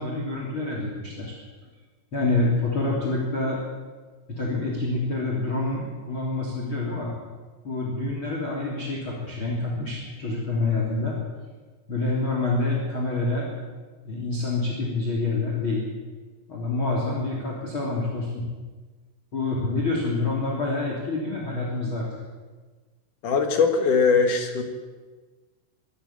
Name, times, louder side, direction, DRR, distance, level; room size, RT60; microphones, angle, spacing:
voice 1, 0.0-1.3 2.1-3.6 4.3-7.1 7.6-11.2 11.9-13.6 14.0-15.9 16.5-18.4 19.3-22.1, left 2 dB, 30° left, -2 dB, 3.4 m, -27 dB
voice 2, 23.2-24.6, left 5 dB, 55° left, 5 dB, 2.4 m, -20 dB
24.5 x 13.0 x 8.9 m, 1.3 s
omnidirectional pair, 5.6 m